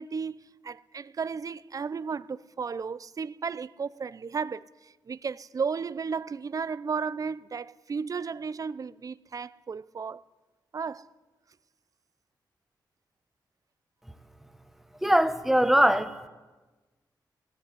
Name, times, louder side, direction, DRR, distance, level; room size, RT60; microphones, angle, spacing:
voice 1, 0.0-10.2 10.7-11.1, right 5 dB, 50° right, 0.6 m, -34 dB
voice 2, 15.0-16.3, equal, 5° right, 1.3 m, -22 dB
18.5 x 16.0 x 9.8 m
wide cardioid pair, 95°, 8 cm